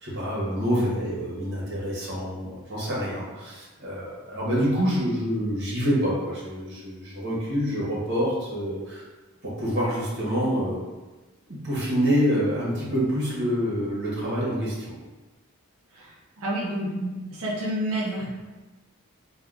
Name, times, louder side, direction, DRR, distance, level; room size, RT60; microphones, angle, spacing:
voice 1, 0.0-9.0 9.4-10.8 11.5-14.9, equal, 50° right, -6 dB, 0.9 m, -27 dB
voice 2, 16.4-18.3, right 1 dB, 80° right, -3 dB, 0.7 m, -29 dB
3.5 x 2.2 x 2.3 m, 1.2 s
head